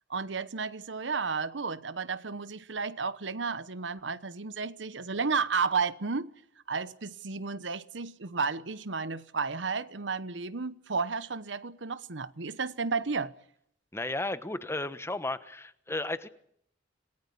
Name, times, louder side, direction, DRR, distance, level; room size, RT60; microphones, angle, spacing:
voice 1, 0.1-6.3 6.7-13.3, right 4 dB, 80° right, 1.1 m, -32 dB
voice 2, 13.9-16.3, left 2 dB, 15° left, 1.2 m, -34 dB
27.0 x 19.0 x 8.4 m
head